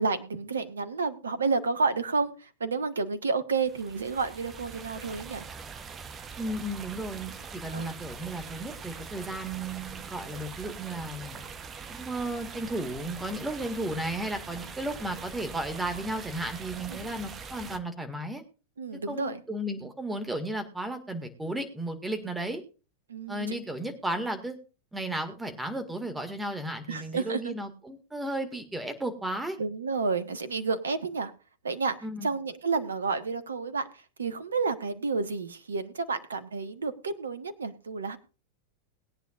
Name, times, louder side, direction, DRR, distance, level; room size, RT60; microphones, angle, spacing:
voice 1, 0.0-5.4 7.7-7.9 16.9-17.1 18.8-19.4 23.1-23.5 26.9-27.5 29.6-31.3 31.6-32.0 32.2-33.9 34.2-38.2, right 4 dB, 70° right, 12 dB, 1.2 m, -30 dB
sound 1, 3.6-17.8, right 5 dB, 25° right, 0.9 m, -43 dB
voice 2, 6.4-11.4 11.9-18.4 19.1-22.6 23.3-24.6 24.9-29.6 32.0-32.3, right 1 dB, 10° right, 7 dB, 2.0 m, -34 dB
21.0 x 9.1 x 2.5 m, 0.34 s
figure-of-eight pair, 90°, 0 cm